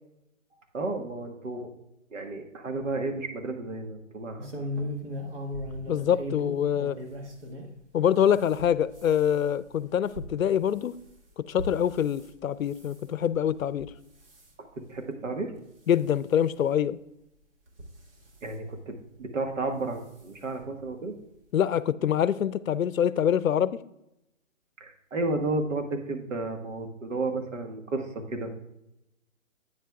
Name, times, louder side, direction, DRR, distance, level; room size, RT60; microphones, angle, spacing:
voice 1, 0.7-1.7 2.1-4.5 14.9-15.5 18.4-21.2 24.8-28.5, right 2 dB, 70° right, 1.5 m, -32 dB
sound 1, 4.4-7.7 8.2-12.3 12.7-13.0 13.6-13.9 14.2-14.5 15.1-15.2 15.6-15.7 16.8-16.9 17.7-18.5 19.6-19.8 20.2-20.3 20.6-20.7, left 1 dB, 45° right, 1.5 m, -38 dB
voice 2, 5.9-7.0 7.9-10.9 11.5-13.9 15.9-17.0 21.5-23.7, left 9 dB, 85° left, 0.6 m, -25 dB
8.9 x 7.7 x 2.3 m
hypercardioid pair, 155°, 40 cm